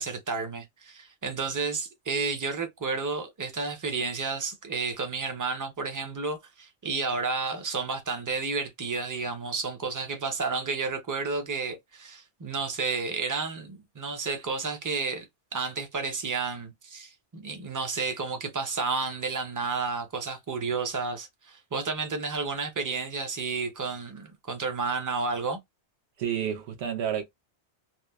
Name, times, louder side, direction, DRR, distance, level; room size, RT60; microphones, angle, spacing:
voice 1, 0.0-15.3 15.5-25.6, right 4 dB, 25° right, 0.4 m, -31 dB
voice 2, 26.2-27.2, right 9 dB, 75° right, 0.9 m, -30 dB
2.9 x 2.0 x 2.3 m
omnidirectional pair, 1.2 m